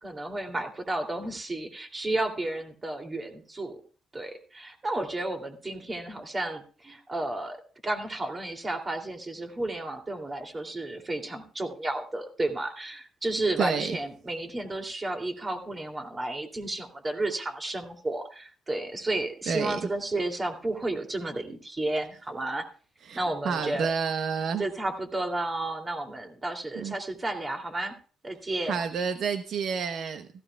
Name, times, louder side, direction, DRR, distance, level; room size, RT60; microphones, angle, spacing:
voice 1, 0.0-3.8 4.1-22.7 23.1-23.9 24.6-27.9 28.2-28.8, right 2 dB, 25° right, 4 dB, 2.8 m, -32 dB
voice 2, 13.6-13.9 19.5-19.8 23.1-24.6 26.8-26.9 28.7-30.3, right 6 dB, 65° right, 8 dB, 0.9 m, -29 dB
16.0 x 15.5 x 2.3 m, 0.39 s
cardioid pair, 90°, 0 cm